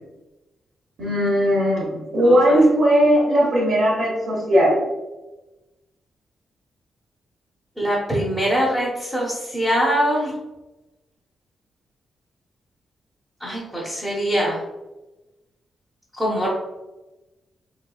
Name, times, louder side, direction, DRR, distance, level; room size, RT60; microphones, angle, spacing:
voice 1, 1.0-4.8, equal, 65° right, -5 dB, 0.9 m, -18 dB
voice 2, 2.2-2.6 7.8-10.3 13.4-14.6 16.2-16.5, equal, ahead, -7 dB, 0.7 m, -23 dB
3.7 x 3.0 x 2.3 m, 1.1 s
wide cardioid pair, 155°, 0 cm